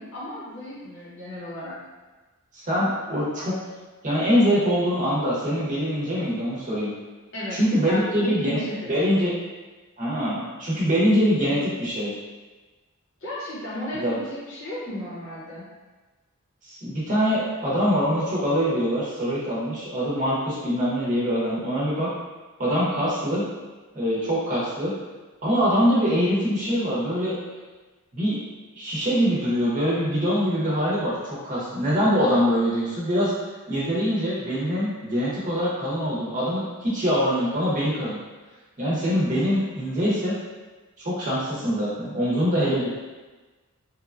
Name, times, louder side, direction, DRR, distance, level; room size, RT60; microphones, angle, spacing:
voice 1, 0.0-1.8 7.3-8.9 13.2-15.7, left 1 dB, 60° left, -7 dB, 0.9 m, -34 dB
voice 2, 2.5-3.5 4.0-6.9 7.5-8.6 8.9-9.3 10.0-12.2 13.9-14.2 16.7-22.1 22.6-23.5 23.9-24.9 25.4-27.4 28.1-28.4 28.7-33.3 33.7-38.2 38.8-40.3 41.0-42.9, equal, 35° right, -7 dB, 0.7 m, -23 dB
3.0 x 2.2 x 2.4 m, 1.2 s
head